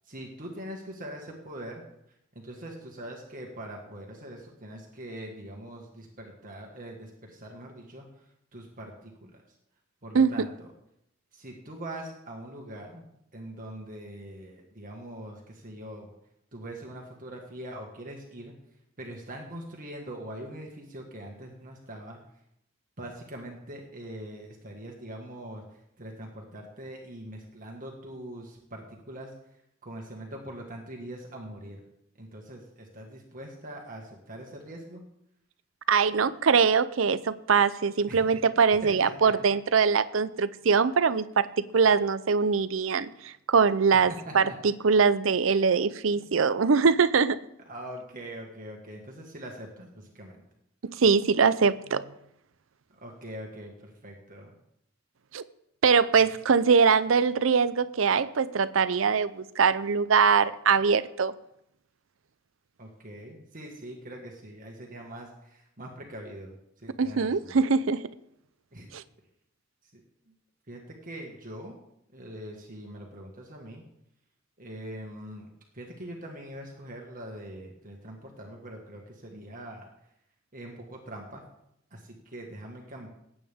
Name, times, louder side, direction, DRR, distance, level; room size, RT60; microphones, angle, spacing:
voice 1, 0.1-1.8 2.4-8.1 8.5-9.4 10.0-10.7 11.3-16.1 16.5-18.5 19.0-22.2 23.0-25.6 26.0-29.3 29.8-31.8 32.2-35.0 38.1-38.4 38.8-39.3 43.9-44.0 44.3-44.6 46.2-46.3 47.7-50.4 52.9-54.5 62.8-67.6 68.7-68.9 70.7-71.8 72.1-73.8 74.6-75.5 75.7-79.9 80.5-81.4 81.9-83.1, right 1 dB, 45° right, 0 dB, 1.8 m, -42 dB
voice 2, 35.9-41.5 41.7-47.4 50.9-52.0 55.3-55.4 55.8-61.3 67.0-68.1 68.9-69.0, right 5 dB, 80° right, 15 dB, 0.6 m, -23 dB
19.0 x 8.9 x 3.6 m, 0.78 s
head